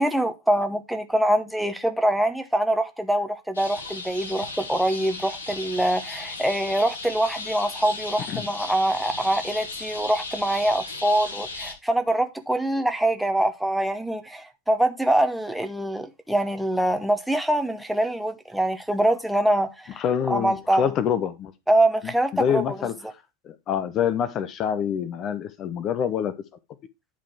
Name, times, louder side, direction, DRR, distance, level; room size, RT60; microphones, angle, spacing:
voice 1, 0.0-20.9 21.7-22.8, right 1 dB, ahead, 0.9 m, -24 dB
sound 1, 3.5-11.7, left 3 dB, 70° left, 1.5 m, -36 dB
voice 2, 20.0-21.5 22.0-23.0 23.4-26.3, left 8 dB, 30° left, 0.8 m, -26 dB
10.5 x 3.9 x 4.6 m
figure-of-eight pair, 90°, 0 cm